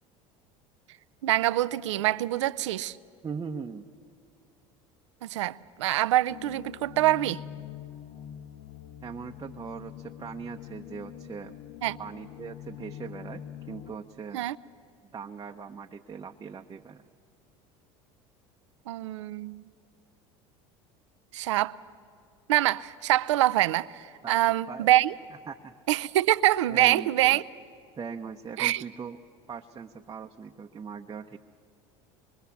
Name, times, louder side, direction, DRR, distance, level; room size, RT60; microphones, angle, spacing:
voice 1, 1.2-3.0 5.2-7.4 11.8-12.0 14.3-14.5 18.9-19.6 21.3-21.7 22.5-25.1 25.9-27.4 28.6-28.8, right 14 dB, 90° right, 0.5 m, -25 dB
voice 2, 3.2-3.9 9.0-11.6 12.0-14.5 15.1-17.0 24.2-24.9 25.5-25.7 26.7-27.4 28.0-29.2 29.5-31.4, right 6 dB, 25° right, 0.9 m, -40 dB
sound 1, 6.3-14.0, left 10 dB, 65° left, 0.9 m, -44 dB
25.0 x 22.5 x 7.0 m
supercardioid pair, 90°, 15 cm